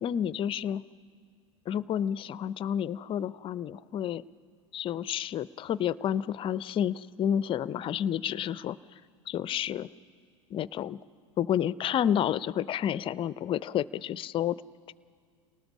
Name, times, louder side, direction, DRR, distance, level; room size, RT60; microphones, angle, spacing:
voice 1, 0.0-0.8 1.7-4.2 4.7-8.8 9.3-9.9 10.5-11.0 11.4-14.6, left 10 dB, 30° left, 19 dB, 0.5 m, -30 dB
28.5 x 18.5 x 6.1 m, 2.1 s
hypercardioid pair, 85°, 16 cm